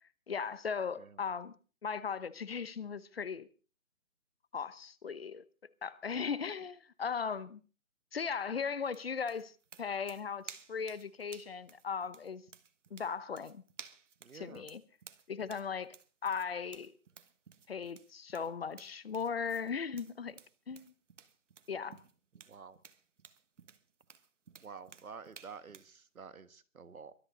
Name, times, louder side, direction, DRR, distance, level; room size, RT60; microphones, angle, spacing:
voice 1, 0.3-1.5 1.8-3.5 4.5-5.4 5.8-7.6 8.1-9.5 9.8-12.4 12.9-13.6 14.3-14.8 15.3-15.9 16.2-16.9 17.7-20.4 20.7-20.9 21.7-22.0, left 6 dB, 45° left, 0.9 m, -37 dB
sound 1, 8.8-25.9, right 6 dB, 60° right, 1.4 m, -55 dB
voice 2, 14.2-14.6 22.3-22.8 24.6-27.1, right 5 dB, 80° right, 1.5 m, -50 dB
23.5 x 10.0 x 4.0 m
figure-of-eight pair, 160°, 42 cm